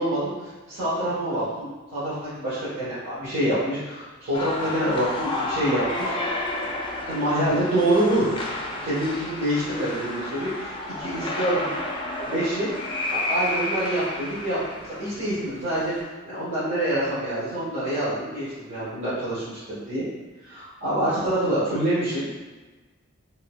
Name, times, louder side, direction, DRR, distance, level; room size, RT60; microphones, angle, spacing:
voice 1, 0.0-6.4 7.1-8.3 8.7-10.7 11.0-11.7 12.2-12.7 13.1-20.0 20.4-22.3, right 1 dB, 55° right, -13 dB, 1.2 m, -26 dB
sound 1, 4.3-16.0, left 2 dB, 25° left, 0.3 m, -31 dB
4.0 x 2.7 x 2.2 m, 1.3 s
head